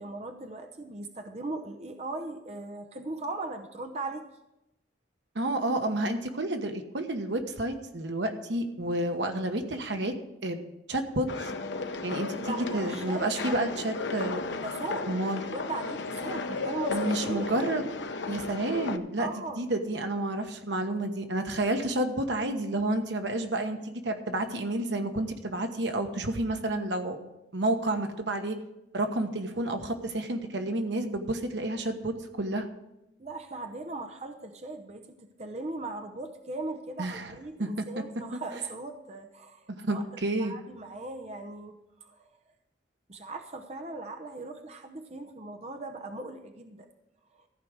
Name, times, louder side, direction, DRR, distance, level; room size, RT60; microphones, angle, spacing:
voice 1, 0.0-4.3 12.3-13.6 14.6-17.6 19.2-19.6 33.2-40.0 40.4-42.3 43.1-46.9 47.3-47.4, right 2 dB, 35° right, 5 dB, 0.7 m, -39 dB
voice 2, 5.3-10.1 10.4-11.5 12.0-14.4 15.1-15.4 16.9-17.8 18.3-19.3 19.6-27.2 27.5-28.6 28.9-32.7 37.0-37.3 37.6-37.8 39.8-40.5, right 1 dB, 80° right, 6 dB, 1.2 m, -30 dB
sound 1, 11.3-19.0, left 4 dB, 85° left, 0.7 m, -34 dB
14.5 x 4.9 x 8.0 m, 0.92 s
head